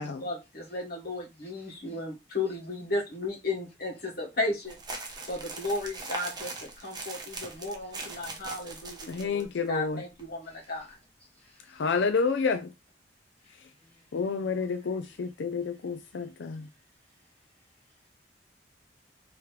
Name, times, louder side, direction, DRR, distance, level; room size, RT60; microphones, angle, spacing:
voice 1, 0.0-4.8 5.3-11.0, left 2 dB, 55° left, 1.5 m, -34 dB
voice 2, 1.4-2.0 5.1-5.3 6.8-8.2 9.1-9.2 10.4-10.7 11.3-11.9 13.4-14.2 14.6-15.3 16.1-16.3 17.1-17.2, left 1 dB, 10° left, 2.6 m, -62 dB
sound 1, 4.6-9.4 9.7-9.8 10.2-10.3 10.6-10.9, right 3 dB, 25° right, 0.9 m, -40 dB
voice 3, 9.1-10.0 11.7-12.7 14.1-16.7, left 5 dB, 75° left, 0.4 m, -29 dB
5.0 x 3.0 x 3.2 m
head